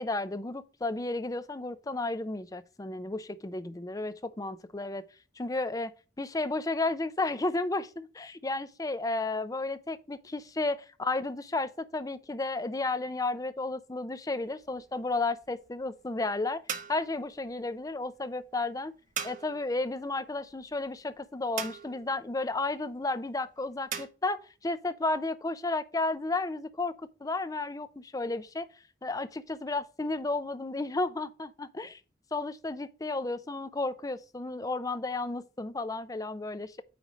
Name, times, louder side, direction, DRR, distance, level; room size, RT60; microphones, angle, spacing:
voice 1, 0.0-5.0 5.4-5.9 6.2-16.6 16.9-18.9 19.2-27.0 27.2-28.7 29.0-32.0 32.3-36.8, left 2 dB, 20° left, 0.5 m, -33 dB
sound 1, 14.4-24.1, right 7 dB, 45° right, 0.8 m, -43 dB
9.1 x 3.2 x 5.0 m
head